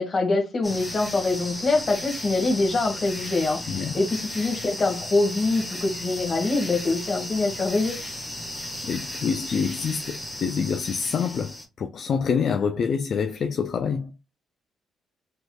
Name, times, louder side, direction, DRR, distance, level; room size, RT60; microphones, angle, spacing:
voice 1, 0.0-8.0, left 3 dB, 40° left, 1.6 m, -24 dB
sound 1, 0.6-11.7, left 1 dB, 10° left, 1.1 m, -35 dB
voice 2, 3.7-4.0 8.6-14.1, left 6 dB, 55° left, 0.4 m, -27 dB
3.5 x 3.1 x 2.2 m
cardioid pair, 90°, 0 cm